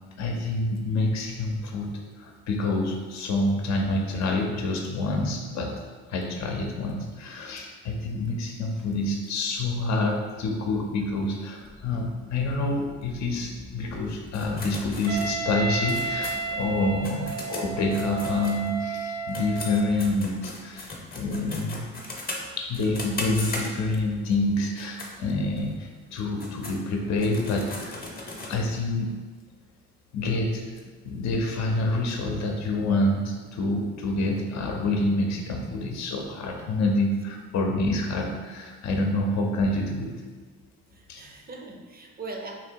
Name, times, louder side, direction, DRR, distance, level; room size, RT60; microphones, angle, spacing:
voice 1, 0.2-1.9 2.2-5.7 6.1-20.9 21.1-21.8 22.6-28.0 28.5-29.1 30.1-30.7 31.0-40.1 41.1-41.2, left 2 dB, 65° left, 2 dB, 0.6 m, -27 dB
sound 1, 11.6-17.1, left 2 dB, 15° left, 0.4 m, -46 dB
sound 2, 14.3-19.0 19.3-24.1 24.6-25.1 25.6-25.7 26.2-28.5, left 2 dB, 30° left, 0.8 m, -38 dB
Wind instrument woodwind instrument, 15.1-20.1, right 3 dB, 70° right, 0.8 m, -32 dB
voice 2, 40.9-42.6, right 3 dB, 30° right, 2 dB, 0.6 m, -40 dB
2.9 x 2.9 x 4.4 m, 1.5 s
cardioid pair, 90°, 30 cm